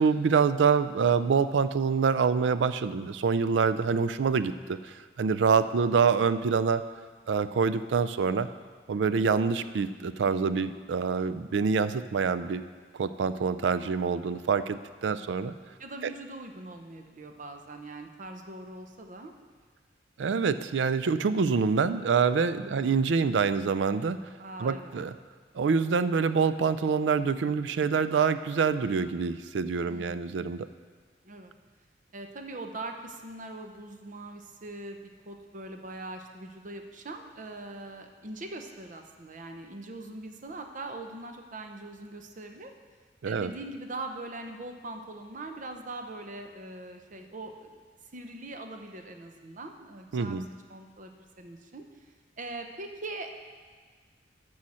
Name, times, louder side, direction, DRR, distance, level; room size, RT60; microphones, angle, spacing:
voice 1, 0.0-6.8 7.3-8.5 8.9-12.6 12.9-15.5 16.0-16.1 20.2-24.2 24.6-25.1 25.5-30.7 43.2-43.5 50.1-50.4, right 5 dB, 80° right, 13 dB, 0.4 m, -26 dB
voice 2, 15.8-19.3 22.6-22.9 24.4-24.9 29.9-30.4 31.2-31.5 32.1-35.0 35.3-42.7 43.2-47.7 48.1-50.4 50.7-51.8 52.4-53.3, right 2 dB, 45° right, 5 dB, 0.8 m, -41 dB
12.5 x 6.4 x 4.2 m, 1.6 s
head